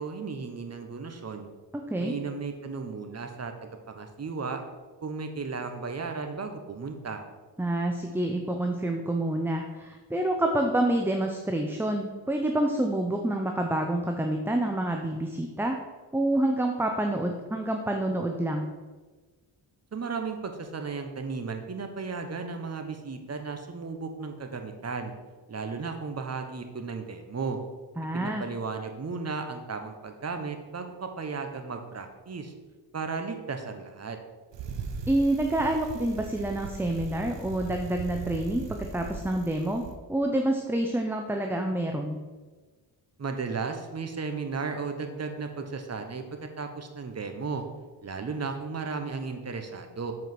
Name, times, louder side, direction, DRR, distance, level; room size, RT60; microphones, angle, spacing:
voice 1, 0.0-1.5 2.0-4.6 5.0-7.2 19.9-25.1 25.5-27.6 28.1-32.5 32.9-34.2 43.2-46.2 46.6-47.6 48.0-50.1, right 4 dB, 35° right, 6 dB, 1.2 m, -35 dB
voice 2, 1.7-2.2 7.6-15.8 16.1-18.7 28.0-28.5 35.1-39.8 40.1-42.2, right 1 dB, 5° right, 3 dB, 0.7 m, -27 dB
Bicycle, 34.5-39.9, right 4 dB, 80° right, 1.0 m, -39 dB
7.5 x 5.1 x 6.1 m, 1.3 s
cardioid pair, 90°, 42 cm